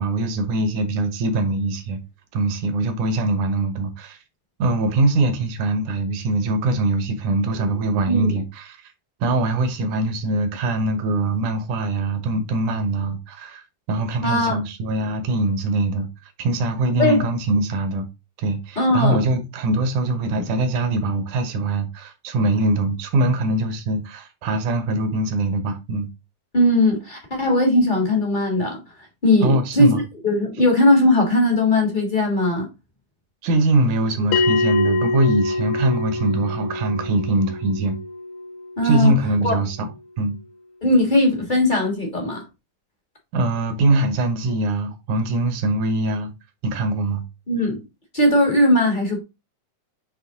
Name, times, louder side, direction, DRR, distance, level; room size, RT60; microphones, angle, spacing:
voice 1, 0.0-2.0 2.3-4.2 4.6-8.9 9.2-13.6 13.9-16.1 16.4-18.1 18.4-26.1 29.4-30.0 33.4-38.0 38.8-39.9 40.2-40.3 43.3-46.3 46.6-47.2, right 2 dB, 75° right, 2.6 m, -22 dB
voice 2, 14.2-14.6 17.0-17.2 18.7-19.2 26.5-28.8 29.2-32.7 38.8-39.1 39.4-39.5 40.8-42.4 47.5-47.8 48.1-49.2, left 1 dB, 25° left, 0.9 m, -19 dB
Bell, 34.3-39.4, left 3 dB, 90° left, 1.2 m, -25 dB
7.8 x 3.3 x 3.7 m
omnidirectional pair, 3.6 m